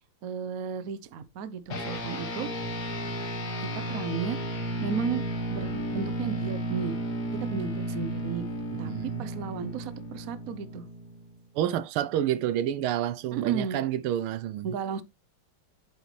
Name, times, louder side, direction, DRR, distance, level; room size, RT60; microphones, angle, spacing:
voice 1, 0.2-2.5 3.9-5.2 5.5-7.0 7.5-8.4 8.8-10.8 13.3-13.8 14.6-15.0, right 6 dB, 60° right, 0.9 m, -34 dB
sound 1, 1.7-11.4, right 1 dB, 50° left, 2.1 m, -33 dB
voice 2, 8.7-9.3 11.5-14.7, right 11 dB, 80° right, 1.5 m, -29 dB
8.1 x 7.8 x 3.2 m
omnidirectional pair, 2.4 m